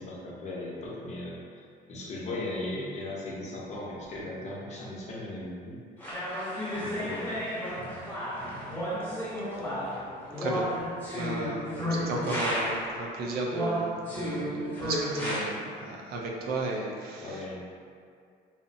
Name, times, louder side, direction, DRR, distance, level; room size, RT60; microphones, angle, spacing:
voice 1, 0.0-1.6 1.9-6.1 6.7-7.5 7.7-8.1 11.4-11.6 17.2-17.6, left 1 dB, 45° left, -5 dB, 0.6 m, -38 dB
sound 1, 6.0-13.0 13.5-15.4, equal, 10° left, 0.7 m, -32 dB
voice 2, 10.4-10.7 11.1-17.4, right 2 dB, 65° right, -1 dB, 0.4 m, -34 dB
2.6 x 2.0 x 2.6 m, 2.2 s
cardioid pair, 110°, 17 cm